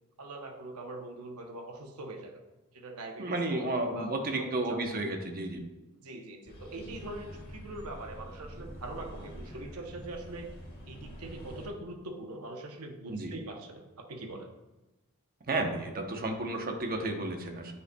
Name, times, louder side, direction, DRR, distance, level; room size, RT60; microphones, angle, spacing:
voice 1, 0.2-2.4 2.7-4.8 6.0-10.6 10.9-14.5, right 2 dB, 75° right, 4 dB, 0.8 m, -42 dB
voice 2, 3.2-5.6 13.1-13.3 15.5-17.7, right 2 dB, 40° right, 4 dB, 0.8 m, -32 dB
sound 1, 6.5-11.7, equal, 45° left, 1.6 m, -46 dB
9.3 x 5.3 x 2.3 m, 1.1 s
head